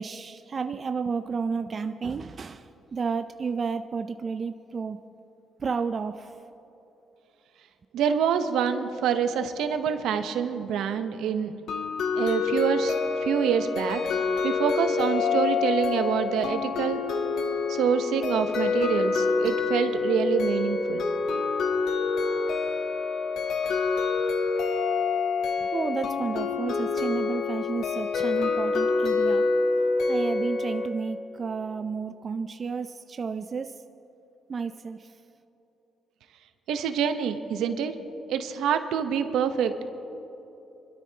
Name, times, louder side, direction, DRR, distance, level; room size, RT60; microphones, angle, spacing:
voice 1, 0.0-5.0 5.6-6.3 25.6-29.5 30.1-33.8 34.5-35.1, right 5 dB, 40° right, 9 dB, 0.4 m, -32 dB
voice 2, 7.9-11.6 12.1-12.9 13.2-14.0 14.4-17.0 17.7-21.0 36.7-38.0 38.3-39.8, right 7 dB, 85° right, 8 dB, 0.9 m, -26 dB
sound 1, 11.7-30.9, left 4 dB, 75° left, 1.2 m, -27 dB
24.5 x 12.5 x 2.9 m, 3.0 s
cardioid pair, 90°, 0 cm